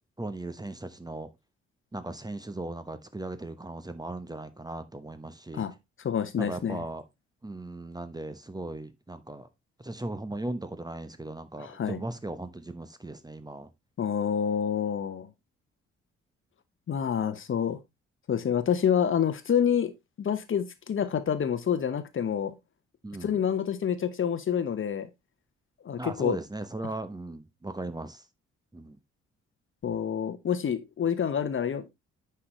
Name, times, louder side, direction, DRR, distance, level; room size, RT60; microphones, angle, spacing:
voice 1, 0.2-1.3 1.9-5.6 6.4-7.0 7.4-9.5 9.8-13.7 23.0-23.4 26.0-28.2 28.7-29.0, right 2 dB, 10° right, 1.1 m, -37 dB
voice 2, 6.0-6.8 11.6-12.0 14.0-15.3 16.9-17.8 18.3-19.9 20.2-22.5 23.2-25.1 25.8-26.4 29.8-31.9, left 8 dB, 40° left, 1.1 m, -27 dB
9.8 x 5.8 x 3.3 m
figure-of-eight pair, 40°, 33 cm